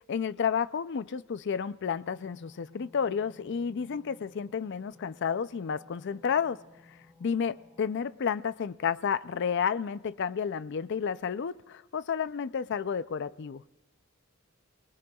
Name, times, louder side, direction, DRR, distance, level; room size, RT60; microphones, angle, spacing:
voice 1, 0.0-6.6 7.2-13.6, left 7 dB, 55° left, 15 dB, 0.4 m, -31 dB
sound 1, 1.8-8.1, left 3 dB, 5° right, 2.0 m, -58 dB
28.5 x 19.5 x 2.3 m, 1.1 s
head